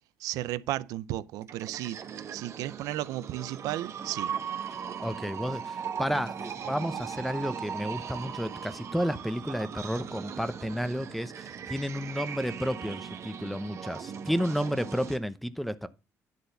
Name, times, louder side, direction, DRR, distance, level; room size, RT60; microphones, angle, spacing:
voice 1, 0.2-2.0 2.3-4.3, right 15 dB, 85° right, 0.5 m, -34 dB
sound 1, 1.4-15.2, right 7 dB, 50° right, 1.2 m, -39 dB
voice 2, 5.0-15.9, equal, ahead, 0.7 m, -32 dB
10.5 x 4.0 x 6.8 m
cardioid pair, 85°, 6 cm